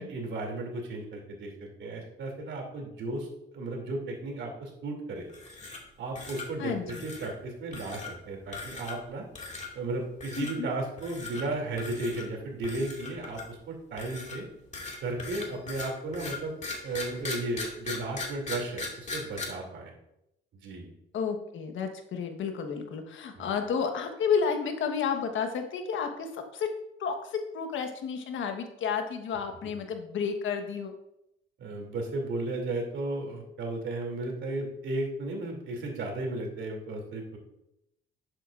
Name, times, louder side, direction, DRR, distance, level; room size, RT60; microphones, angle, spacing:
voice 1, 0.0-3.3 3.5-5.2 6.0-9.3 9.7-14.5 15.0-16.6 16.8-19.9 20.5-20.9 23.4-23.5 31.6-37.4, right 2 dB, 70° right, 0 dB, 2.8 m, -34 dB
sound 1, 5.3-5.9 6.2-6.5 6.9-7.3 7.7-8.1 8.5-9.1 9.4-9.7 10.2-10.5 11.0-11.4 11.8-12.2 12.6-13.6 14.0-19.4, left 3 dB, 35° left, 2.1 m, -38 dB
voice 2, 6.6-7.0 10.4-10.7 21.1-26.7 27.0-30.9, left 6 dB, 75° left, 5 dB, 1.3 m, -31 dB
11.0 x 8.0 x 2.5 m, 0.82 s
cardioid pair, 90°, 20 cm